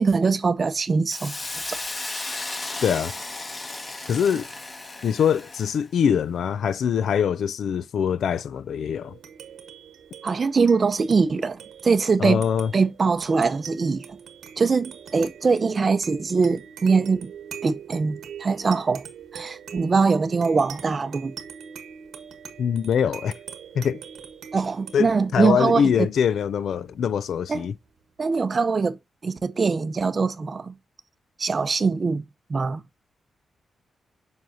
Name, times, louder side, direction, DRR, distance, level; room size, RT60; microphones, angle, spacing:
voice 1, 0.0-1.4 1.7-1.8 10.2-12.4 12.7-14.2 14.6-17.3 17.6-19.0 19.3-21.3 24.5-25.9 27.5-27.7 28.2-29.0 29.2-30.7 31.4-32.2 32.5-32.8, right 4 dB, 35° right, 0.6 m, -22 dB
Hiss, 1.1-5.8, left 2 dB, 25° left, 1.2 m, -34 dB
voice 2, 2.8-3.1 4.1-4.5 5.0-9.2 12.2-12.7 22.6-23.3 23.7-24.0 24.9-27.7, left 8 dB, 70° left, 0.4 m, -23 dB
sound 1, 9.0-27.9, right 8 dB, 90° right, 1.4 m, -43 dB
7.7 x 5.5 x 2.6 m
wide cardioid pair, 150°, 0 cm